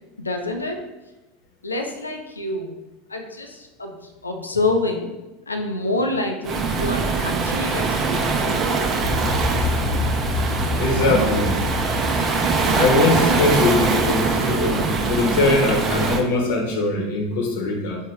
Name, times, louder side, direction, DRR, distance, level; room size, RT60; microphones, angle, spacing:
voice 1, 0.2-0.8 1.6-2.8 3.1-5.1 5.5-8.7, left 2 dB, 90° left, 4 dB, 0.4 m, -27 dB
Waves surf, 6.4-16.2, right 4 dB, 35° right, 0.5 m, -22 dB
sound 1, 9.0-14.8, left 3 dB, 15° left, 0.6 m, -28 dB
voice 2, 10.8-11.6 12.7-18.0, left 3 dB, 65° left, 0 dB, 0.8 m, -21 dB
4.8 x 2.1 x 3.2 m, 1.0 s
figure-of-eight pair, 80°, 0 cm